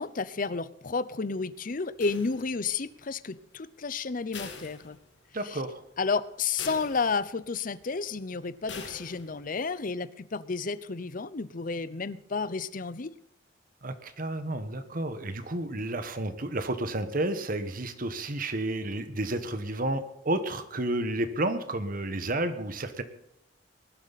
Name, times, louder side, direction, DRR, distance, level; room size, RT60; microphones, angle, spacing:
voice 1, 0.0-5.0 5.4-5.6 6.0-13.1, left 4 dB, 45° left, 17 dB, 0.7 m, -31 dB
sound 1, 2.0-2.8 4.3-5.5 5.9-6.0 6.6-7.5 8.7-9.5, left 5 dB, 75° left, 2.9 m, -44 dB
voice 2, 5.3-5.8 13.8-23.0, right 1 dB, 50° right, 10 dB, 1.3 m, -31 dB
20.0 x 12.0 x 4.2 m, 0.79 s
head